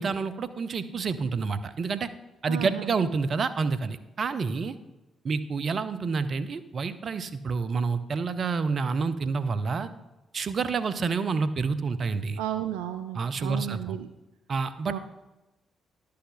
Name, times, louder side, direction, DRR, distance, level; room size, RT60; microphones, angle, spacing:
voice 1, 0.0-2.1 2.4-4.8 5.2-9.9 10.3-12.4 13.1-14.0 14.5-15.0, right 4 dB, 50° right, 12 dB, 0.7 m, -28 dB
voice 2, 2.5-2.9 12.4-14.1 14.9-15.0, right 11 dB, 85° right, 9 dB, 0.4 m, -33 dB
11.0 x 8.5 x 4.0 m, 1.0 s
hypercardioid pair, 45°, 0 cm